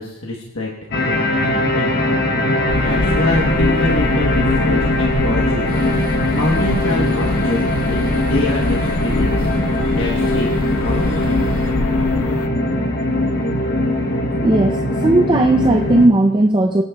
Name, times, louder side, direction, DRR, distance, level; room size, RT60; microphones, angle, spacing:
voice 1, 0.0-10.5 10.8-11.4, left 2 dB, 65° left, -2 dB, 1.1 m, -26 dB
sound 1, 0.9-16.1, left 1 dB, 45° left, 0.9 m, -20 dB
sound 2, 2.7-12.5, left 3 dB, 90° left, 0.6 m, -25 dB
sound 3, 5.7-11.7, right 1 dB, 40° right, 1.5 m, -35 dB
voice 2, 14.4-16.8, right 2 dB, 20° right, 2 dB, 0.4 m, -15 dB
23.0 x 9.5 x 2.3 m, 1.0 s
head